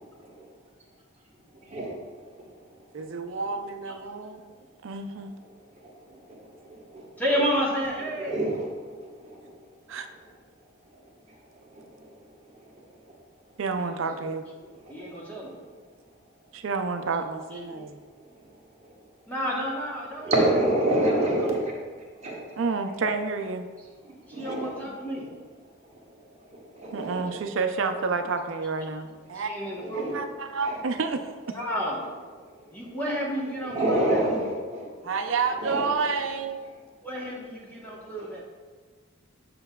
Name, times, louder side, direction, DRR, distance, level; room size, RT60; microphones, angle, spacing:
voice 1, 2.9-4.5 4.8-5.3 9.9-10.1 13.6-14.4 16.5-18.0 22.6-23.7 26.9-29.5 30.1-31.4 35.0-36.6, right 4 dB, 65° right, 7 dB, 0.5 m, -29 dB
voice 2, 6.1-6.6 6.9-7.1 8.2-8.7 9.0-9.4 11.7-12.0 14.8-15.1 20.2-21.8 22.2-22.6 24.0-24.7 26.5-27.2 29.8-30.1 30.6-30.8 33.7-34.9 35.6-35.9 38.1-38.4, right 1 dB, 30° right, -3 dB, 1.2 m, -27 dB
voice 3, 7.2-8.3 13.7-14.0 14.6-15.5 17.5-17.9 19.3-20.3 24.3-25.2 27.1-27.2 29.3-30.1 31.5-32.0 32.7-34.2 37.0-38.4, equal, 10° left, -5 dB, 1.0 m, -31 dB
7.8 x 5.8 x 2.3 m, 1.5 s
head